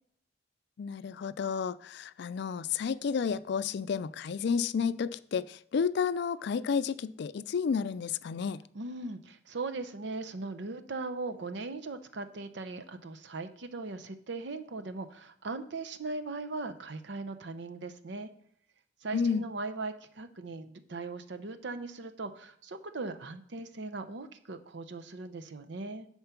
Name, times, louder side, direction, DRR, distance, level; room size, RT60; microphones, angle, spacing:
voice 1, 0.8-8.6 19.1-19.4, left 6 dB, 65° left, 0.4 m, -31 dB
voice 2, 8.7-18.3 19.0-26.1, right 3 dB, 70° right, 0.7 m, -39 dB
10.5 x 4.4 x 5.8 m
head